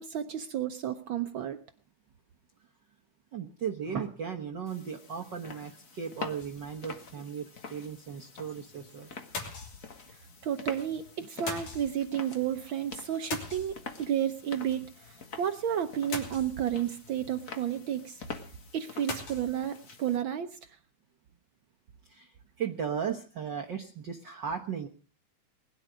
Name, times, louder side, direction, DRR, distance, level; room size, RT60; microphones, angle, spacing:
voice 1, 0.0-1.6 10.4-18.2 18.7-20.6, right 10 dB, 90° right, 8 dB, 1.0 m, -32 dB
voice 2, 3.3-9.1 22.1-24.9, right 7 dB, 55° right, 2 dB, 1.4 m, -36 dB
sound 1, 4.7-20.2, left 4 dB, 40° left, 1.3 m, -46 dB
sound 2, 6.4-6.9 7.4-7.5 7.7-7.8 9.3-10.2 11.5-12.1 13.3-14.2 16.1-16.9 19.1-19.6, left 4 dB, 80° left, 4.3 m, -40 dB
20.5 x 11.0 x 5.1 m, 0.42 s
omnidirectional pair, 3.3 m